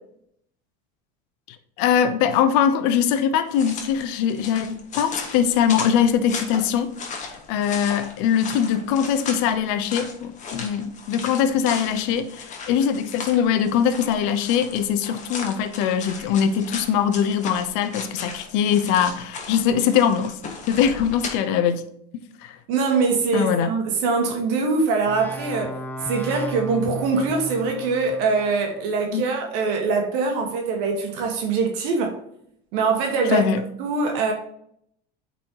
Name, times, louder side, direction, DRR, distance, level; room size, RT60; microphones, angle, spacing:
voice 1, 1.8-6.9 7.5-20.4 20.7-21.8 22.4-22.6 23.3-23.7 29.1-29.2 33.3-33.6, left 8 dB, 75° left, 0.8 m, -22 dB
sound 1, 3.5-21.3, left 4 dB, 35° left, 1.3 m, -37 dB
voice 2, 22.7-25.8 26.0-32.2 32.7-33.5 33.8-34.3, right 4 dB, 75° right, 1.5 m, -23 dB
sound 2, 25.1-28.7, equal, 10° left, 0.5 m, -34 dB
8.4 x 4.2 x 2.9 m
cardioid pair, 135°, 21 cm